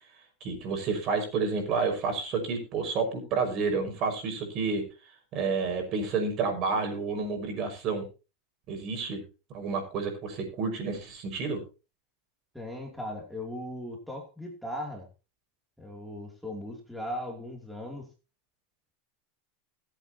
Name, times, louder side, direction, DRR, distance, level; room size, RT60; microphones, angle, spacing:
voice 1, 0.4-4.8 5.3-8.1 8.7-9.2 9.5-11.6, right 4 dB, 45° right, 5 dB, 5.6 m, -30 dB
voice 2, 12.5-15.1 15.8-18.1, left 1 dB, ahead, 0 dB, 2.8 m, -38 dB
20.5 x 8.3 x 2.9 m, 0.31 s
hypercardioid pair, 110°, 0 cm